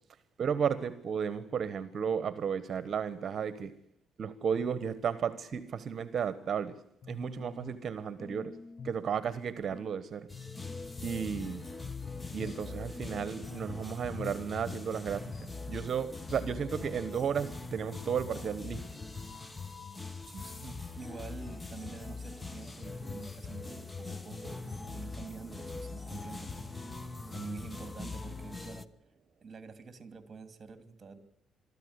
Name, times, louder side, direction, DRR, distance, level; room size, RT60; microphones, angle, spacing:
voice 1, 0.4-3.7 4.2-6.7 7.1-8.5 8.8-10.3 11.0-11.6 12.3-15.3 15.7-18.8, right 7 dB, 55° right, 1.3 m, -33 dB
sound 1, 7.0-7.9 8.2-9.0 9.4-9.9 10.3-11.5 11.8-12.7 13.0-13.7 14.2-14.5 14.8-14.9, left 6 dB, 50° left, 1.1 m, -47 dB
sound 2, 10.3-28.8, left 3 dB, 20° left, 1.2 m, -42 dB
voice 2, 20.2-26.8 27.3-28.9 29.4-31.2, right 4 dB, 40° right, 2.9 m, -47 dB
23.5 x 14.0 x 9.8 m
cardioid pair, 90°, 0 cm